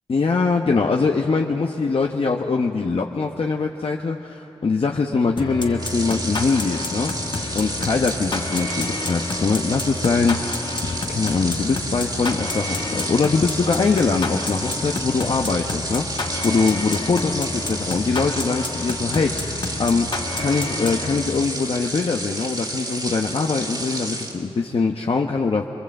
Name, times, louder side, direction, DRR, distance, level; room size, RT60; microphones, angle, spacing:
voice 1, 0.1-7.1 7.5-10.6 10.8-20.1 20.4-25.7, left 4 dB, 65° left, 1 dB, 1.1 m, -22 dB
sound 1, 5.4-21.7, left 3 dB, 50° left, 1.4 m, -30 dB
sound 2, 5.7-24.4, right 1 dB, 45° right, 3.0 m, -31 dB
26.5 x 23.0 x 7.9 m, 2.9 s
wide cardioid pair, 75°, 10 cm